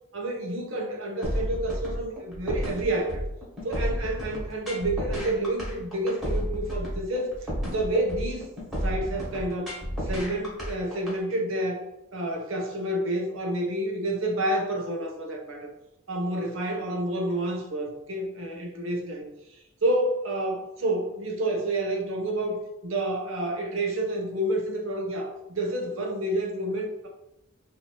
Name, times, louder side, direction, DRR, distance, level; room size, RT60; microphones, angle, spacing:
voice 1, 0.1-3.2 3.6-7.3 7.6-8.5 8.8-9.7 10.0-11.8 12.1-15.7 16.1-19.3 19.8-27.1, right 1 dB, 75° right, 1 dB, 0.8 m, -29 dB
sound 1, 1.2-11.2, equal, ahead, 1.4 m, -31 dB
2.9 x 2.7 x 4.4 m, 0.88 s
head